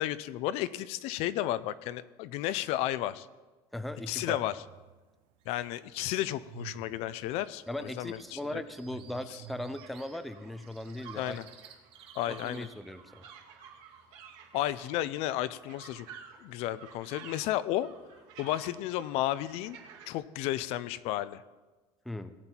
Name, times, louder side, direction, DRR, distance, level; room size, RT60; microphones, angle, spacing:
voice 1, 0.0-3.3 4.1-4.5 5.5-8.6 11.2-11.4 12.2-12.7 14.5-16.1 16.4-17.9 18.4-19.8 20.1-21.4, left 14 dB, 60° left, 15 dB, 0.5 m, -33 dB
voice 2, 3.7-4.4 7.7-11.4 12.3-13.2 22.1-22.3, left 1 dB, ahead, 10 dB, 0.4 m, -38 dB
sound 1, 4.7-5.0 5.3-10.0, right 11 dB, 90° right, 0.8 m, -50 dB
sound 2, 5.4-5.7 6.2-6.3 6.6-6.7 7.1-10.2 10.6-12.7, right 7 dB, 45° right, 1.7 m, -56 dB
sound 3, 9.8-20.1, right 7 dB, 70° right, 2.1 m, -52 dB
18.0 x 8.8 x 4.4 m, 1.2 s
cardioid pair, 170°, 12 cm